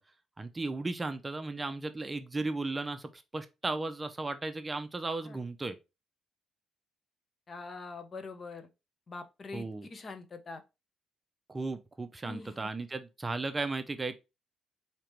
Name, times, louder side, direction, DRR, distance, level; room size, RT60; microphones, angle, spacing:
voice 1, 0.4-5.8 9.5-9.9 11.5-14.2, right 3 dB, 20° right, 0.5 m, -35 dB
voice 2, 7.5-8.7 9.1-10.6 12.2-12.7, left 3 dB, 40° left, 0.8 m, -44 dB
4.8 x 2.9 x 3.0 m
cardioid pair, 90°, 0 cm